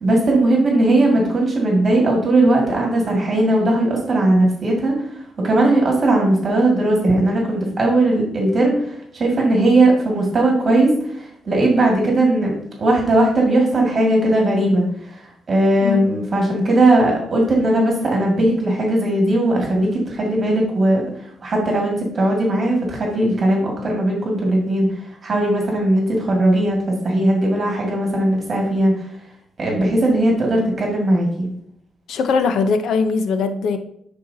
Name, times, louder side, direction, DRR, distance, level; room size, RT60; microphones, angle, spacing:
voice 1, 0.0-5.0 5.4-29.0 29.6-31.5, right 1 dB, 45° right, 2.1 m, -18 dB
voice 2, 32.1-33.8, left 5 dB, 80° left, 0.7 m, -20 dB
10.5 x 4.4 x 2.8 m
cardioid pair, 90°, 0 cm